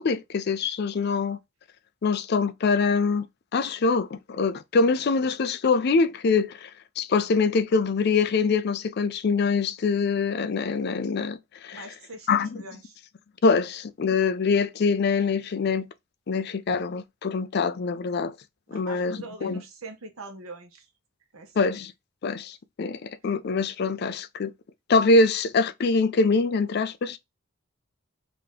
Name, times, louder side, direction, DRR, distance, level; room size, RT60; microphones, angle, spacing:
voice 1, 0.0-1.4 2.0-3.3 3.5-6.7 7.0-11.4 11.6-11.8 12.3-12.6 13.4-15.9 16.3-18.3 18.7-19.6 21.6-21.9 22.2-24.5 24.9-27.2, left 4 dB, 50° left, 0.4 m, -24 dB
voice 2, 11.7-13.0 18.7-20.9 21.3-21.7, right 2 dB, 85° right, 1.1 m, -43 dB
3.5 x 2.9 x 3.6 m
head